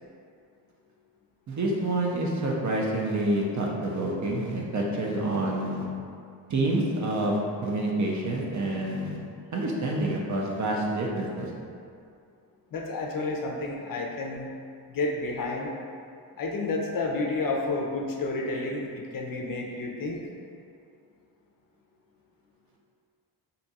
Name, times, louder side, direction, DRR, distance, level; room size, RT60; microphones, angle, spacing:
voice 1, 1.5-5.9 6.5-9.2 9.5-11.5, right 1 dB, 45° right, -2 dB, 0.5 m, -28 dB
voice 2, 12.7-14.5 14.9-15.7 16.4-20.2, left 3 dB, 55° left, 0 dB, 0.5 m, -30 dB
2.7 x 2.3 x 4.0 m, 2.4 s
wide cardioid pair, 105°, 43 cm